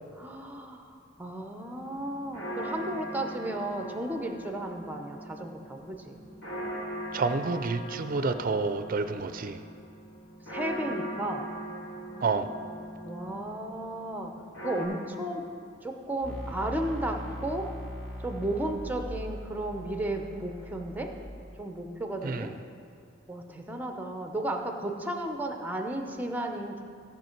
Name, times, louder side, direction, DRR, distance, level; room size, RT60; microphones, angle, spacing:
voice 1, 0.2-6.2 10.4-11.4 12.1-12.5 13.0-14.3 14.6-15.4 15.8-17.7 18.2-21.1 21.6-22.5 23.3-26.8, right 1 dB, 10° right, 3 dB, 0.7 m, -34 dB
sound 1, 1.6-14.9, right 1 dB, 65° left, 2.6 m, -40 dB
voice 2, 7.1-9.6 12.2-12.5 22.2-22.5, right 4 dB, 45° right, 10 dB, 0.5 m, -29 dB
sound 2, 16.2-21.3, equal, 5° left, 2.5 m, -40 dB
16.0 x 5.7 x 4.5 m, 2.4 s
head